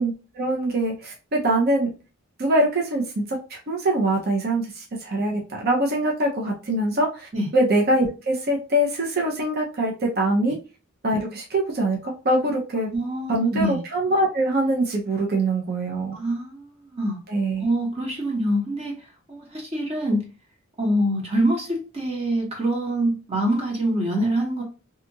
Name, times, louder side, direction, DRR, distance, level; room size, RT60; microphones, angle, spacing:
voice 1, 0.0-1.9 2.4-10.6 11.0-12.9 13.3-16.1 17.3-17.6, right 1 dB, 50° right, 0 dB, 0.6 m, -23 dB
voice 2, 12.9-13.8 16.1-17.2 17.6-20.3 20.8-24.6, right 1 dB, 30° right, 1 dB, 1.0 m, -25 dB
2.8 x 2.4 x 2.6 m, 0.33 s
head